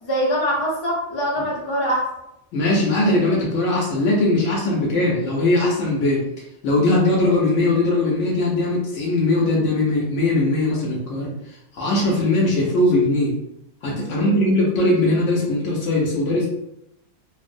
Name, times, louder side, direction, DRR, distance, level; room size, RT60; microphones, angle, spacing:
voice 1, 0.0-2.0 14.1-14.4, equal, 30° left, -5 dB, 0.5 m, -23 dB
voice 2, 2.5-6.3 6.6-13.3 13.8-16.5, left 2 dB, 75° left, -4 dB, 0.9 m, -20 dB
2.5 x 2.0 x 2.5 m, 0.85 s
omnidirectional pair, 1.3 m